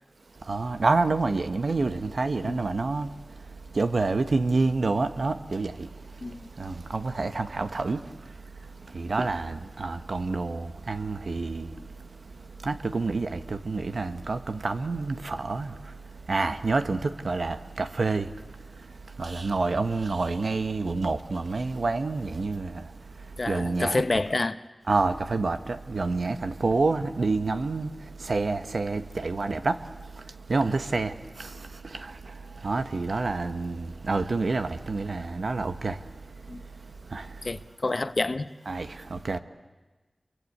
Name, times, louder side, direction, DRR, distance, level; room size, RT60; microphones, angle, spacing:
voice 1, 0.3-24.0 24.9-37.5 38.7-39.4, right 3 dB, 80° right, 1.3 m, -29 dB
voice 2, 23.4-24.6 36.5-36.6 37.4-38.5, left 2 dB, 60° left, 1.0 m, -28 dB
28.5 x 23.5 x 8.7 m
wide cardioid pair, 45°, 0 cm